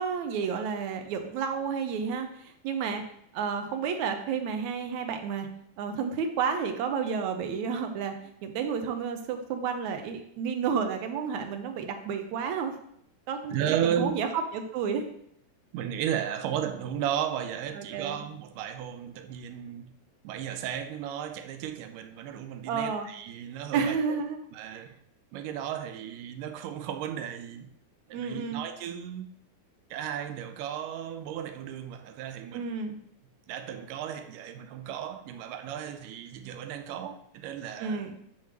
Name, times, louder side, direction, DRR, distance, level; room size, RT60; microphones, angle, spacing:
voice 1, 0.0-3.0 3.3-5.5 5.8-8.1 8.4-12.7 13.3-13.5 13.8-14.3 14.5-15.1 17.7-18.1 22.7-23.1 23.7-24.4 24.7-24.8 28.1-28.6 32.5-33.0 37.8-38.2, right 6 dB, 70° right, 2.1 m, -31 dB
voice 2, 13.5-14.2 15.7-20.0 20.2-24.2 24.5-25.0 25.3-27.7 28.1-29.3 29.9-32.8 33.5-38.0, right 9 dB, 90° right, 2.2 m, -34 dB
8.8 x 3.2 x 6.0 m
omnidirectional pair, 3.7 m